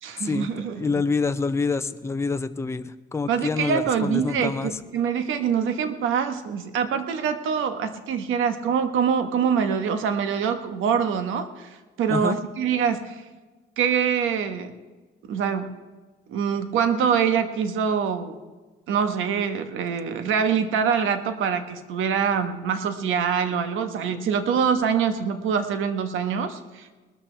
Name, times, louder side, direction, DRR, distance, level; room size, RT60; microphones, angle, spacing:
voice 1, 0.0-1.0 3.3-11.7 12.0-13.2 13.8-14.7 15.3-15.8 16.3-18.4 18.9-27.0, right 7 dB, 85° right, 8 dB, 1.3 m, -24 dB
voice 2, 0.8-4.7 12.1-12.4, left 4 dB, 15° left, 9 dB, 0.6 m, -26 dB
20.0 x 13.5 x 3.4 m, 1.3 s
cardioid pair, 90°, 20 cm